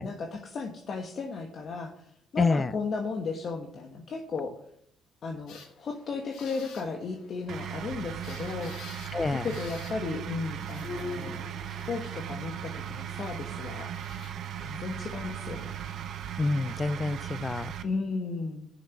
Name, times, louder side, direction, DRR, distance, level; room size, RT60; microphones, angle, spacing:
voice 1, 0.0-2.0 2.3-4.5 5.2-8.7 9.3-13.9 14.6-15.8 17.8-18.7, left 4 dB, 55° left, 1.3 m, -35 dB
voice 2, 2.4-2.7 9.1-9.5 16.4-17.7, left 3 dB, 30° left, 0.4 m, -27 dB
sound 1, 5.5-14.3, left 4 dB, 80° left, 1.8 m, -47 dB
sound 2, 7.5-17.8, right 9 dB, 70° right, 0.8 m, -37 dB
6.9 x 6.6 x 7.0 m
cardioid pair, 85°, 0 cm